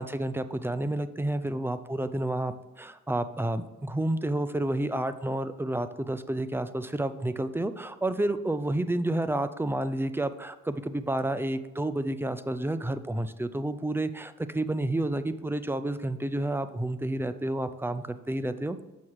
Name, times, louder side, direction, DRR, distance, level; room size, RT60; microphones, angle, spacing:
voice 1, 0.0-18.8, right 1 dB, 10° right, 12 dB, 0.5 m, -30 dB
7.3 x 6.1 x 4.7 m, 1.1 s
cardioid pair, 90°, 30 cm